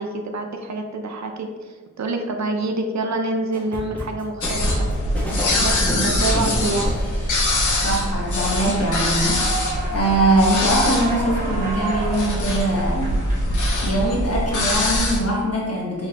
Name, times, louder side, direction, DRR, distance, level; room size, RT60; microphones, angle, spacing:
voice 1, 0.0-4.9 5.6-7.0, right 2 dB, 60° right, 4 dB, 0.6 m, -27 dB
sound 1, 3.5-7.8, equal, 5° left, 1.2 m, -30 dB
sound 2, 4.4-15.2, left 1 dB, 70° left, 0.8 m, -23 dB
voice 2, 5.7-6.1 7.8-13.2 13.8-16.1, right 1 dB, 50° left, -3 dB, 1.2 m, -22 dB
Human voice / Clapping / Cheering, 8.2-14.2, right 2 dB, 25° right, 1.3 m, -31 dB
3.8 x 3.4 x 2.8 m, 1.4 s
wide cardioid pair, 60°, 31 cm